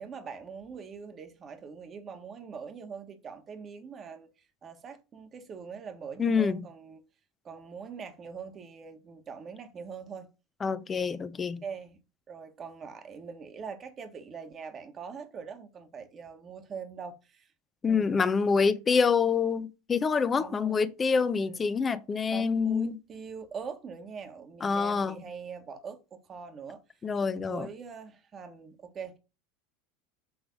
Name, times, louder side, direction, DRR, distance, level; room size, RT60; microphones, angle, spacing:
voice 1, 0.0-4.3 4.6-7.0 7.4-10.3 11.6-12.0 12.3-17.5 17.9-18.2 20.4-20.9 21.3-21.7 22.3-26.8 27.2-29.2, right 6 dB, 35° right, 1.4 m, -43 dB
voice 2, 6.2-6.7 10.6-11.6 17.8-23.0 24.6-25.2 27.0-27.7, left 5 dB, 25° left, 0.7 m, -26 dB
7.1 x 3.3 x 5.2 m
hypercardioid pair, 85°, 0 cm